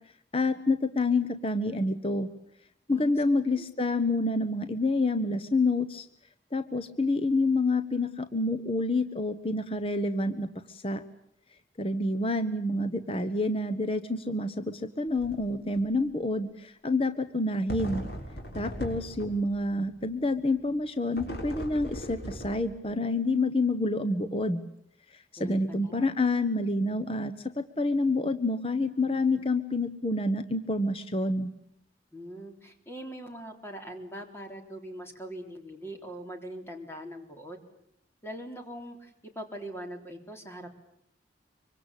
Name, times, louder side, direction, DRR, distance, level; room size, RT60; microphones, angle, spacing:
voice 1, 0.3-2.3 2.9-6.1 6.5-11.0 11.8-18.0 18.5-24.7 25.1-31.5, left 2 dB, 30° left, 10 dB, 1.1 m, -28 dB
sound 1, 15.1-15.4 15.7-15.8 17.7-19.6 21.1-22.9, equal, 65° left, 6.5 m, -38 dB
voice 2, 25.4-26.1 32.1-37.6 38.2-40.7, equal, 15° left, 4 dB, 3.6 m, -42 dB
25.5 x 25.0 x 8.4 m, 0.70 s
head